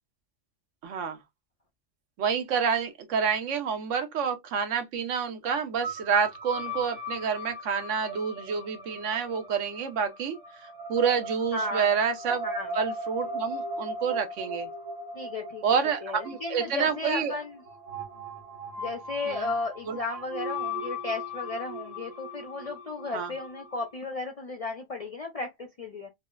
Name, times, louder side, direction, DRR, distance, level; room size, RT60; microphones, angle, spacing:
voice 1, 0.8-1.2 2.2-10.4 10.9-12.5 12.7-14.7 15.6-17.4 19.3-19.5 19.9-20.0 23.1-23.3, right 6 dB, 85° right, 1.1 m, -28 dB
sound 1, 5.8-23.9, equal, 35° right, 1.0 m, -38 dB
voice 2, 11.5-11.9 12.4-12.8 15.1-17.6 18.8-26.1, left 3 dB, 55° left, 0.4 m, -34 dB
4.0 x 2.0 x 2.2 m
omnidirectional pair, 1.2 m